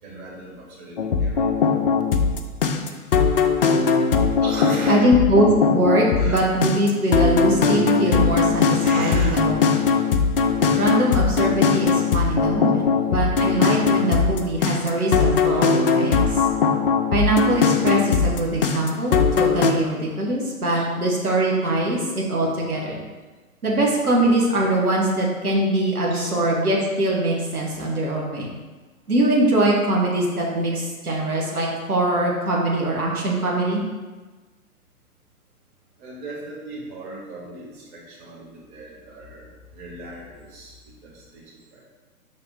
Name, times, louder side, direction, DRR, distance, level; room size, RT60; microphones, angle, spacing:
voice 1, 0.0-2.2 4.4-5.2 6.1-6.5 8.8-9.4 15.4-15.6 20.7-20.9 26.1-26.3 36.0-39.5 39.7-41.8, right 1 dB, 30° right, -4 dB, 1.8 m, -37 dB
sound 1, 1.0-19.7, left 5 dB, 40° left, 0.5 m, -20 dB
voice 2, 4.9-9.6 10.8-16.4 17.1-23.0 23.6-28.5 29.1-33.8, right 1 dB, 70° right, -3 dB, 1.7 m, -22 dB
5.7 x 4.1 x 5.2 m, 1.3 s
figure-of-eight pair, 125°, 45 cm